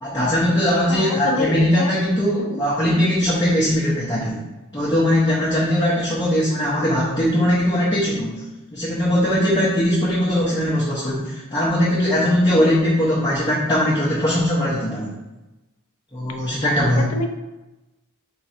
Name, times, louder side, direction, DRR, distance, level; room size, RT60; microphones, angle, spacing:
voice 1, 0.0-4.4 4.7-8.4 8.7-15.1 16.1-17.1, equal, 20° left, -8 dB, 0.8 m, -20 dB
voice 2, 0.9-1.9 2.4-2.6 16.6-17.3, left 2 dB, 75° left, 5 dB, 0.5 m, -27 dB
3.8 x 3.0 x 4.4 m, 1.1 s
head